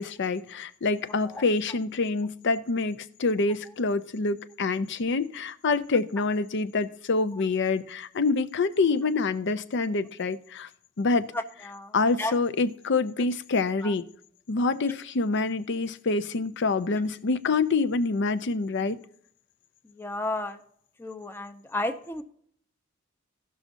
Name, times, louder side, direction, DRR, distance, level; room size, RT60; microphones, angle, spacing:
voice 1, 0.0-10.7 11.0-11.3 11.9-14.1 14.5-19.0, left 3 dB, 60° left, 12 dB, 0.6 m, -26 dB
voice 2, 11.3-11.9 12.2-12.3 13.8-13.9 20.0-20.6 21.0-22.2, left 2 dB, 10° left, 7 dB, 0.7 m, -32 dB
17.5 x 6.2 x 2.6 m, 0.65 s
head